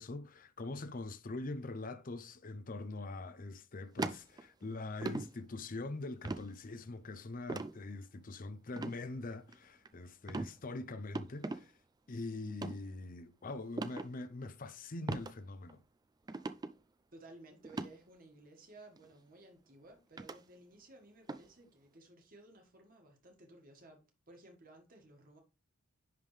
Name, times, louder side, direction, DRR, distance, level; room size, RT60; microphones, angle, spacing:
voice 1, 0.0-11.7 12.1-15.8, left 2 dB, 40° left, 0.6 m, -43 dB
sound 1, 4.0-4.7 5.0-5.3 6.3-6.5 7.5-7.7 8.7-9.0 9.5-9.9 10.3-10.5 11.2-11.6 12.5-12.8 13.8-14.1 15.1-15.3 15.7-15.8 16.3-16.7 17.6-17.9 19.0-19.1 20.2-20.4 21.3-21.5, right 3 dB, 20° right, 0.3 m, -38 dB
voice 2, 17.1-25.4, right 2 dB, 40° right, 1.7 m, -57 dB
10.5 x 3.6 x 3.2 m
head